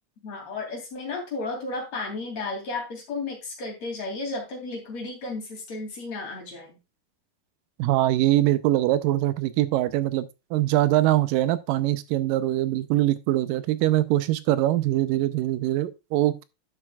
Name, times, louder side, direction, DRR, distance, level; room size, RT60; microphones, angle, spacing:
voice 1, 0.2-6.8, left 3 dB, 50° left, 3.8 m, -33 dB
voice 2, 7.8-16.4, right 15 dB, 85° right, 2.3 m, -23 dB
11.0 x 7.6 x 2.3 m
omnidirectional pair, 3.9 m